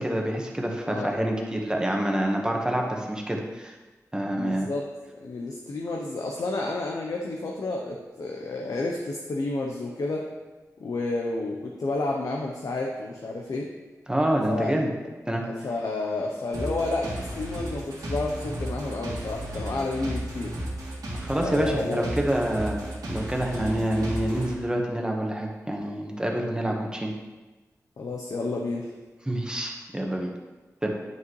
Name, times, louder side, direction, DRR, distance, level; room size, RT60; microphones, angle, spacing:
voice 1, 0.0-3.7 4.1-4.7 14.1-14.9 15.3-15.4 21.2-27.1 29.3-30.3 30.8-30.9, right 1 dB, 15° right, 0 dB, 1.3 m, -27 dB
voice 2, 4.3-4.9 5.2-10.3 10.8-13.7 14.5-14.7 15.4-20.6 21.4-22.1 28.0-28.9, left 2 dB, 75° left, 0 dB, 0.8 m, -30 dB
sound 1, 16.5-24.5, right 1 dB, 90° right, 1.8 m, -34 dB
9.3 x 5.6 x 3.2 m, 1.2 s
cardioid pair, 60°, 6 cm